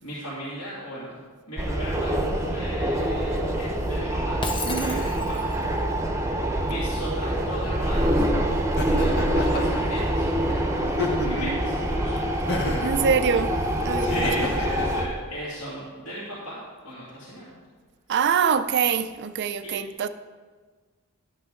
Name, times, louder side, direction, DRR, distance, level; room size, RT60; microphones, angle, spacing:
voice 1, 0.0-1.2 1.5-4.5 4.8-5.4 6.6-8.3 8.9-12.2 14.0-17.5 19.6-19.8, right 1 dB, 65° left, 2.5 m, -36 dB
sound 1, 1.6-15.1, right 1 dB, 15° right, 0.9 m, -25 dB
Shatter, 4.4-5.6, left 3 dB, 20° left, 0.6 m, -33 dB
voice 2, 4.6-5.1 11.2-11.6 12.8-13.5 13.8-14.5 18.1-20.1, right 6 dB, 50° right, 0.4 m, -25 dB
Laughter, 8.8-9.8 10.9-11.6 12.5-13.0 14.1-14.9, left 2 dB, 50° left, 1.1 m, -30 dB
11.5 x 8.5 x 3.8 m
head